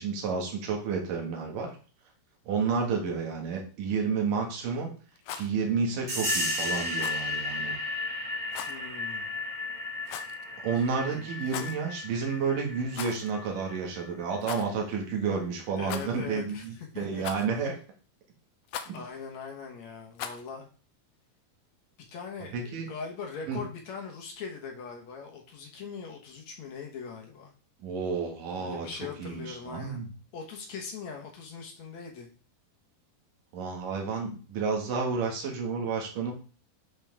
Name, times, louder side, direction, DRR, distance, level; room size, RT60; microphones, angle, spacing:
voice 1, 0.0-1.7 2.5-4.9 5.3-7.7 10.6-17.7 18.9-19.0 22.5-22.9 23.5-23.6 27.8-28.9 29.2-30.1 33.5-36.3, right 5 dB, 70° right, 0 dB, 3.4 m, -31 dB
Rattle, 5.1-5.5 7.0-7.3 8.5-8.8 10.1-10.5 11.4-11.8 12.9-13.3 13.6-13.7 14.4-14.7 15.8-16.3 17.2-17.6 18.7-19.0 20.2-20.5, left 9 dB, 80° left, 2.2 m, -39 dB
sound 1, 6.1-14.4, left 2 dB, 20° right, 1.8 m, -34 dB
voice 2, 8.7-9.3 10.7-11.3 15.7-17.2 18.9-20.7 22.1-27.5 28.6-30.1 30.3-32.3, left 5 dB, 60° left, 1 dB, 2.3 m, -41 dB
10.5 x 5.0 x 3.6 m, 0.39 s
omnidirectional pair, 4.1 m